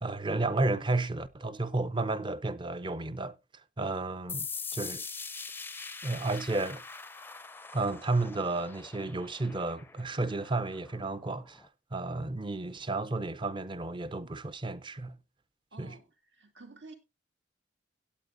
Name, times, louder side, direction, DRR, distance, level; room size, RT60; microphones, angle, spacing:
voice 1, 0.0-3.4 3.8-5.0 6.0-6.8 7.7-15.2 15.8-16.0, right 2 dB, 25° right, 0.7 m, -32 dB
sound 1, 4.3-11.7, left 5 dB, 10° left, 0.5 m, -43 dB
voice 2, 15.7-17.0, right 2 dB, 80° right, 2.6 m, -51 dB
17.0 x 9.2 x 2.6 m
head